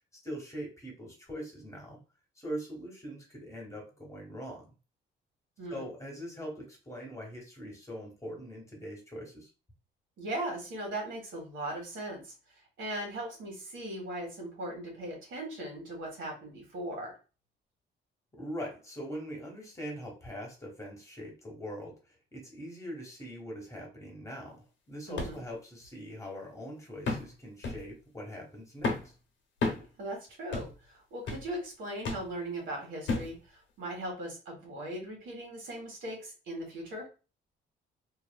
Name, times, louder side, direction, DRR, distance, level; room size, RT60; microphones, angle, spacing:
voice 1, 0.1-2.0 2.4-4.7 5.7-9.5 18.3-29.1, equal, 15° left, -1 dB, 1.2 m, -42 dB
voice 2, 10.2-12.3 12.8-17.1 25.1-25.4 30.0-37.1, right 1 dB, 75° right, 0 dB, 1.3 m, -39 dB
sound 1, 25.2-25.4 25.8-25.9 27.1-27.3 27.6-27.9 28.8-29.1 29.6-29.9 30.5-30.8 31.3-31.5 32.1-32.3 33.1-33.4 34.0-34.1, left 3 dB, 65° left, 0.8 m, -32 dB
2.6 x 2.3 x 2.2 m, 0.33 s
cardioid pair, 90°, 20 cm